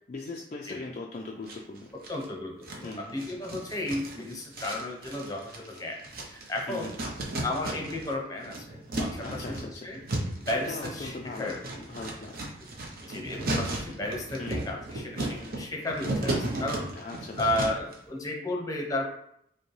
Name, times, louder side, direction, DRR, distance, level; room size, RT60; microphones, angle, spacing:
voice 1, 0.1-1.9 2.8-3.4 6.7-6.9 9.2-9.9 10.7-12.4 14.4-14.6 16.9-17.4, left 3 dB, 40° left, -1 dB, 0.3 m, -40 dB
sound 1, 1.5-2.3 2.6-8.1 8.4-17.9, right 1 dB, 50° right, 0.8 m, -35 dB
voice 2, 2.1-6.0 6.3-6.9 7.4-9.5 9.8-10.0 10.4-11.6 12.9-16.9 17.4-19.1, left 1 dB, 20° left, 0 dB, 0.7 m, -33 dB
5.0 x 2.1 x 3.2 m, 0.71 s
head